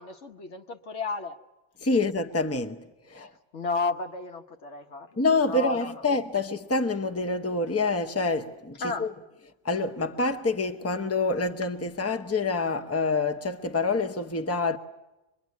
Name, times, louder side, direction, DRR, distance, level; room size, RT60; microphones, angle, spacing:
voice 1, 0.0-1.4 3.5-5.2 5.5-5.9 8.8-9.1, left 4 dB, 80° left, 1.6 m, -32 dB
voice 2, 1.8-3.3 5.2-9.1 9.6-14.8, left 3 dB, 15° left, 0.9 m, -27 dB
24.5 x 23.0 x 9.4 m
omnidirectional pair, 1.2 m